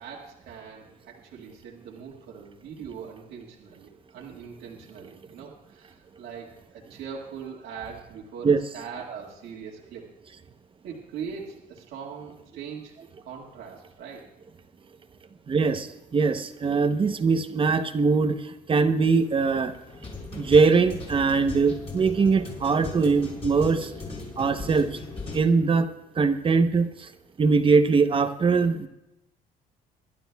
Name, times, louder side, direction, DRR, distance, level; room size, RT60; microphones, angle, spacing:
voice 1, 0.0-10.0 10.8-12.9 13.2-14.3, right 6 dB, 80° right, -3 dB, 1.9 m, -41 dB
voice 2, 15.5-19.8 20.3-23.9 24.4-25.0 25.3-25.9 26.2-27.1 27.4-28.9, right 4 dB, 30° right, 9 dB, 0.8 m, -22 dB
sound 1, 19.2-25.4, left 3 dB, 35° left, 6.1 m, -38 dB
25.5 x 12.0 x 2.3 m, 0.93 s
cardioid pair, 110°, 17 cm